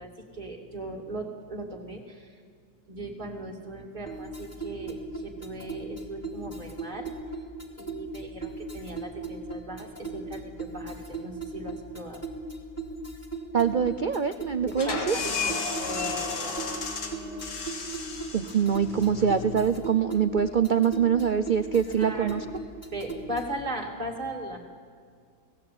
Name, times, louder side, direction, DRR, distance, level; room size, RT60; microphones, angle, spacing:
voice 1, 0.0-2.4 2.9-7.1 7.8-12.2 14.7-15.6 15.9-16.7 22.0-22.5 22.9-24.6, right 2 dB, 25° right, -1 dB, 2.9 m, -38 dB
sound 1, 4.1-23.6, right 2 dB, 10° left, 2.5 m, -38 dB
voice 2, 13.5-15.2 18.3-22.4, right 7 dB, 75° right, 11 dB, 0.4 m, -24 dB
sound 2, 14.7-20.2, left 5 dB, 90° left, 2.8 m, -33 dB
29.5 x 18.5 x 8.8 m, 2.2 s
omnidirectional pair, 1.8 m